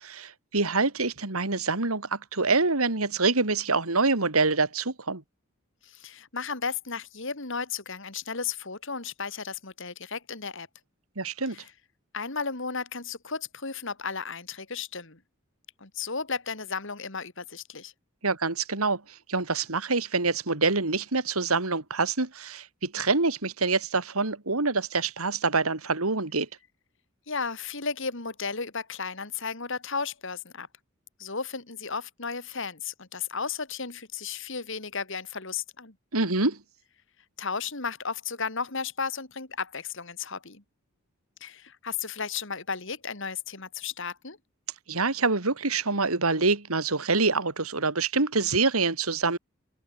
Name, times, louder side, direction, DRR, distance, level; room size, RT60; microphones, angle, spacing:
voice 1, 0.0-5.2 11.2-11.6 18.2-26.5 36.1-36.6 44.9-49.4, right 3 dB, 90° right, 2.8 m, -26 dB
voice 2, 5.8-10.7 11.5-11.6 12.1-15.2 15.8-17.9 27.3-30.7 31.2-35.9 37.4-40.6 41.4-44.4, left 5 dB, 60° left, 2.7 m, -34 dB
open air
head